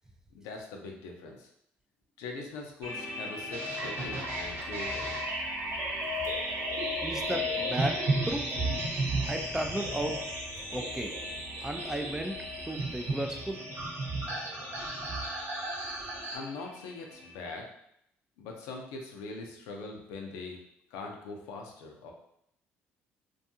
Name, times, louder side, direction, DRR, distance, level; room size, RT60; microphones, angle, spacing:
voice 1, 0.3-1.5 2.2-5.2 16.3-17.7 18.4-20.6 20.9-22.1, left 3 dB, 85° left, 1 dB, 0.5 m, -42 dB
sound 1, 2.8-17.3, left 2 dB, 80° right, 1.2 m, -44 dB
sound 2, 3.5-16.4, right 1 dB, 50° right, 0.8 m, -34 dB
sound 3, 3.9-13.6, left 1 dB, 15° left, 0.8 m, -50 dB
voice 2, 7.0-8.6 9.2-10.2 10.7-11.1 11.6-12.3 12.7-13.7, right 1 dB, 10° right, 5 dB, 0.3 m, -34 dB
2.6 x 2.3 x 2.6 m, 0.74 s
supercardioid pair, 70°, 5 cm